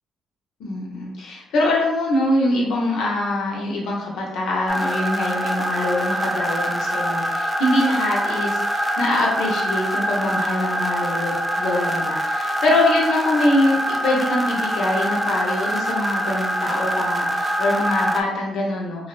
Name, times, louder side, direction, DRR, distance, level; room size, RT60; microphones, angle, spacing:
voice 1, 0.6-19.1, left 1 dB, 80° left, -2 dB, 0.7 m, -23 dB
sound 1, 4.7-18.2, equal, 10° right, 0.3 m, -24 dB
2.6 x 2.0 x 2.4 m, 0.86 s
cardioid pair, 90°, 0 cm